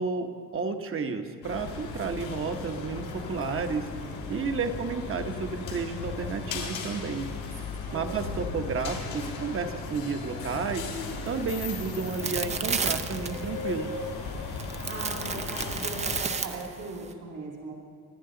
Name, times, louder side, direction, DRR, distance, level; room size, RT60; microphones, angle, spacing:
voice 1, 0.0-3.9 4.3-7.3 7.9-10.9 11.3-14.0, right 5 dB, 35° right, 6 dB, 1.1 m, -32 dB
sound 1, 1.4-16.2, left 4 dB, 90° left, 3.3 m, -36 dB
sound 2, 11.3-17.1, right 5 dB, 20° right, 0.6 m, -33 dB
voice 2, 14.8-17.7, right 3 dB, 55° right, -2 dB, 2.5 m, -39 dB
24.0 x 10.5 x 3.9 m, 2.1 s
cardioid pair, 135°, 35 cm